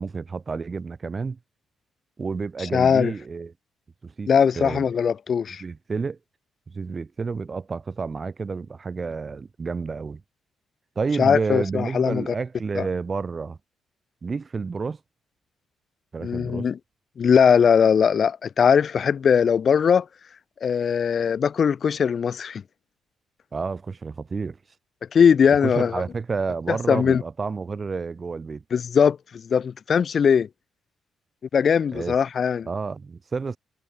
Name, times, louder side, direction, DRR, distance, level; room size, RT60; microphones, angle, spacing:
voice 1, 0.0-1.4 2.2-3.5 4.0-4.3 4.6-4.9 5.6-6.2 6.7-10.2 11.0-13.6 14.2-15.0 16.1-16.7 23.5-24.6 25.5-28.6 31.9-32.1 32.7-33.6, right 4 dB, 35° right, 2.4 m, -30 dB
voice 2, 2.7-3.1 4.3-5.6 11.2-12.3 12.7-12.9 16.2-16.8 17.2-20.1 20.6-22.6 25.1-26.0 26.7-27.2 28.7-30.5 31.5-32.7, left 7 dB, 50° left, 0.7 m, -20 dB
cardioid pair, 100°, 0 cm